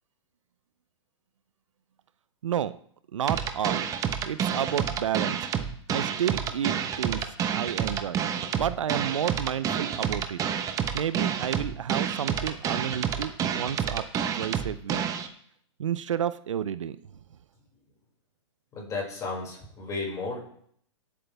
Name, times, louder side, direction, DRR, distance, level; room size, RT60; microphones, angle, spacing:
voice 1, 2.4-2.7 3.1-3.9 4.3-5.4 5.9-7.2 7.5-8.2 8.6-10.4 10.9-14.0 14.3-15.0 15.8-17.0, right 9 dB, 80° right, 15 dB, 0.6 m, -30 dB
sound 1, 3.3-15.3, right 8 dB, 20° right, 1.0 m, -29 dB
voice 2, 18.7-20.4, left 3 dB, 20° left, -2 dB, 5.4 m, -33 dB
18.0 x 8.5 x 3.4 m, 0.63 s
hypercardioid pair, 135°, 16 cm